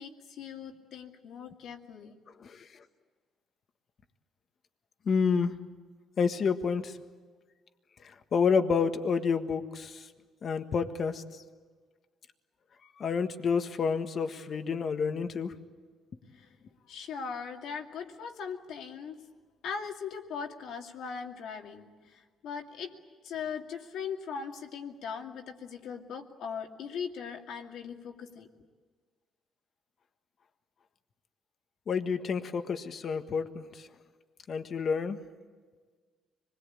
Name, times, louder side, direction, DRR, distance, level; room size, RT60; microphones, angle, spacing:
voice 1, 0.0-2.1 16.3-16.5 16.9-19.2 19.6-22.9 23.2-28.5, left 6 dB, 75° left, 3 dB, 2.5 m, -39 dB
voice 2, 5.1-5.5 6.2-6.9 8.3-9.9 10.4-11.2 13.0-15.5 31.9-33.6 34.5-35.2, left 5 dB, 50° left, 8 dB, 1.6 m, -29 dB
25.5 x 21.0 x 8.7 m, 1.5 s
cardioid pair, 100°, 0 cm